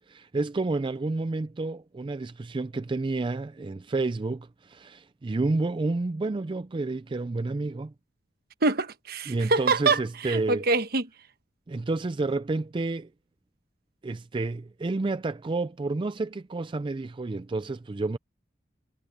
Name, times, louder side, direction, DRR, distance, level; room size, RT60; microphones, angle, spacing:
voice 1, 0.0-7.9 9.3-10.6 11.7-13.1 14.0-18.2, right 3 dB, 30° right, 0.4 m, -30 dB
voice 2, 8.6-11.1, right 3 dB, 55° right, 1.1 m, -25 dB
head